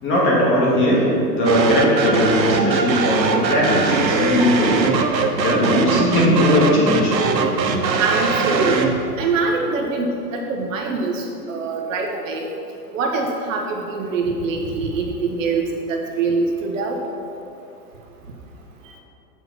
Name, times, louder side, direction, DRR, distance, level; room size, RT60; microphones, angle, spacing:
voice 1, 0.0-7.2, left 1 dB, 25° left, -4 dB, 2.2 m, -19 dB
sound 1, 1.5-9.0, right 4 dB, 90° right, 1.2 m, -21 dB
voice 2, 8.0-8.8 9.2-12.5 12.9-15.6 15.9-17.0, right 4 dB, 50° right, 1 dB, 1.3 m, -23 dB
8.8 x 6.7 x 5.8 m, 2.7 s
hypercardioid pair, 145°, 50 cm